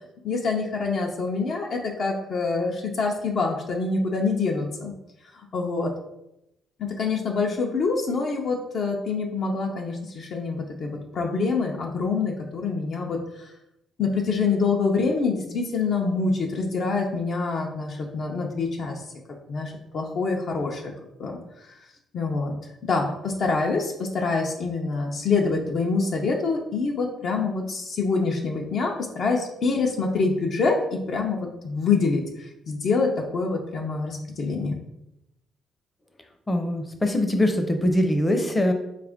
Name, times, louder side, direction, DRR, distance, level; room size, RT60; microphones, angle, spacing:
voice 1, 0.2-4.9 5.5-5.9 6.8-13.5 14.0-19.0 19.5-20.9 21.2-21.4 22.1-22.5 22.8-34.8, left 4 dB, 60° left, 0 dB, 0.6 m, -26 dB
voice 2, 36.5-38.7, left 1 dB, 20° left, 5 dB, 0.6 m, -22 dB
4.2 x 2.4 x 3.5 m, 0.86 s
cardioid pair, 90°, 0 cm